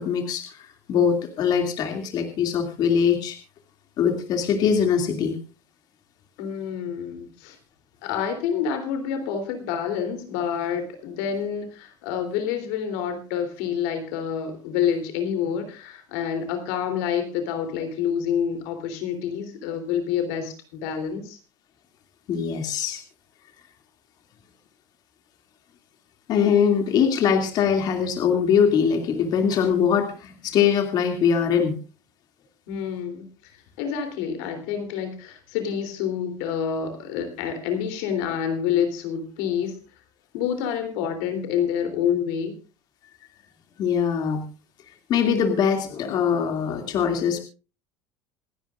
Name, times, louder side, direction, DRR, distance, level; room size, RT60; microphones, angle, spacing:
voice 1, 0.0-3.4 4.0-5.4 22.3-23.0 26.3-31.8 43.8-44.5 45.1-47.4, left 7 dB, 50° left, 5 dB, 2.6 m, -22 dB
voice 2, 6.4-7.6 8.0-21.4 32.7-33.5 33.8-39.7 40.3-42.5, left 8 dB, 80° left, 6 dB, 3.4 m, -28 dB
27.0 x 10.0 x 2.5 m, 0.34 s
supercardioid pair, 125°, 9 cm